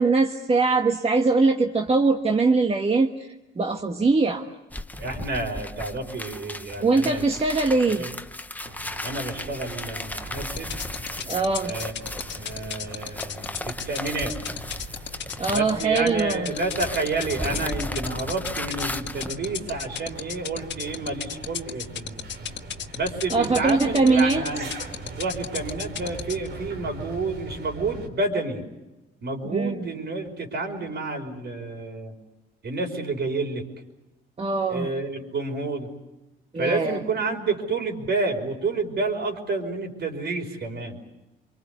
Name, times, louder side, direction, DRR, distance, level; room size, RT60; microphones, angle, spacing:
voice 1, 0.0-4.5 6.8-8.1 11.3-11.7 15.4-16.5 23.3-24.7 29.5-29.8 34.4-34.9 36.5-37.0, right 3 dB, 30° right, 3 dB, 1.4 m, -22 dB
sound 1, 4.7-16.2 16.4-19.3, left 1 dB, 10° left, 1.0 m, -36 dB
voice 2, 5.0-7.3 7.9-8.1 9.0-10.8 11.6-11.9 12.2-14.3 15.5-22.3 22.9-24.7 25.2-28.6 29.2-32.1 32.6-33.6 34.7-35.9 36.6-41.0, right 3 dB, 60° right, 3 dB, 5.2 m, -29 dB
sound 2, 8.6-28.1, right 2 dB, 75° right, 4.2 m, -41 dB
sound 3, 10.6-26.5, left 9 dB, 65° left, 1.5 m, -32 dB
26.0 x 24.0 x 8.2 m, 1.0 s
cardioid pair, 90°, 20 cm